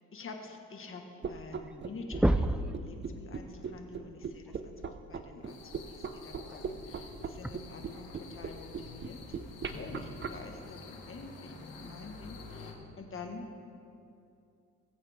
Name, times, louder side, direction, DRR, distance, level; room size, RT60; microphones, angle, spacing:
voice 1, 0.1-1.0 1.3-5.6 5.9-9.4 9.6-13.5, left 3 dB, 45° left, 3 dB, 1.7 m, -47 dB
sound 1, 1.2-1.3 1.6-1.8 2.1-2.8 4.5-4.6 6.4-6.6 7.4-7.5, right 1 dB, 5° right, 0.3 m, -27 dB
sound 2, 1.2-10.3, right 6 dB, 40° right, 0.7 m, -38 dB
sound 3, 5.5-12.7, left 3 dB, 85° left, 1.9 m, -48 dB
20.5 x 8.1 x 3.6 m, 2.6 s
cardioid pair, 90°, 30 cm